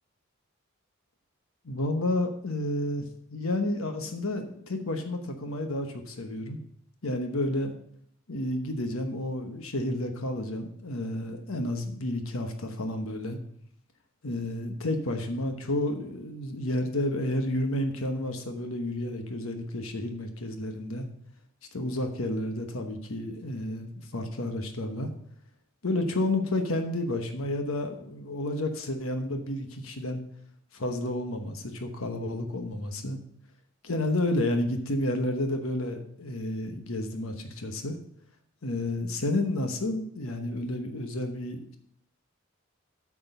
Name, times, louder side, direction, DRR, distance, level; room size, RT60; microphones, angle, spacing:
voice 1, 1.6-3.1 3.3-6.6 7.0-7.7 8.3-13.4 14.2-21.1 21.7-25.1 25.8-30.2 30.7-33.2 33.8-38.0 38.6-41.8, left 1 dB, 85° left, 6 dB, 1.1 m, -31 dB
9.0 x 6.2 x 5.5 m, 0.67 s
head